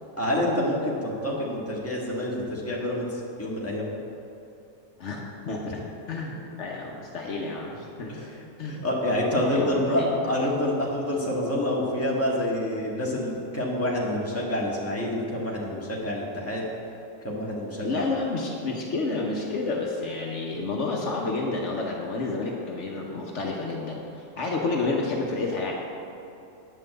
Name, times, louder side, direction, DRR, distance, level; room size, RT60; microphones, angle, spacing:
voice 1, 0.2-3.9 8.1-16.7 17.2-18.0, left 1 dB, 10° left, -4 dB, 1.7 m, -27 dB
voice 2, 5.0-8.1 8.6-8.8 9.4-10.3 17.8-25.7, left 3 dB, 65° left, -1 dB, 1.3 m, -30 dB
9.1 x 5.7 x 7.8 m, 2.8 s
omnidirectional pair, 1.4 m